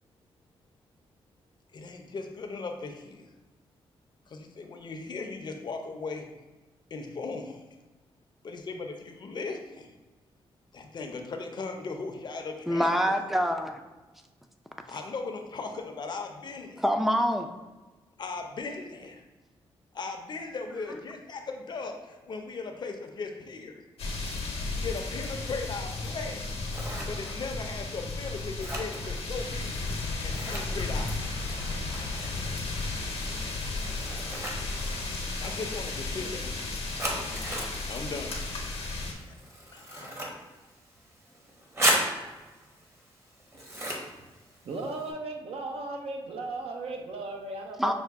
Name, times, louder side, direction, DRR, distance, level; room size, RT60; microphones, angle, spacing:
voice 1, 1.7-3.3 4.3-6.3 6.9-7.6 8.4-9.9 10.7-13.1 14.9-16.8 18.2-19.2 19.9-23.9 24.8-26.5 27.1-29.8 30.2-31.5 35.4-36.7 37.3-37.6 37.9-39.0 39.3-39.4 39.7-40.1, left 4 dB, 45° left, 4 dB, 0.5 m, -38 dB
voice 2, 12.7-13.8 16.8-17.5 20.7-20.8 47.8-47.9, equal, ahead, 5 dB, 0.4 m, -25 dB
sound 1, 24.0-39.1, left 3 dB, 80° left, 0.8 m, -34 dB
Scissors, 26.3-45.1, right 1 dB, 25° right, 0.9 m, -37 dB
voice 3, 44.6-47.9, right 2 dB, 75° right, 2 dB, 0.7 m, -36 dB
5.5 x 2.2 x 3.5 m, 1.2 s
cardioid pair, 95°, 10 cm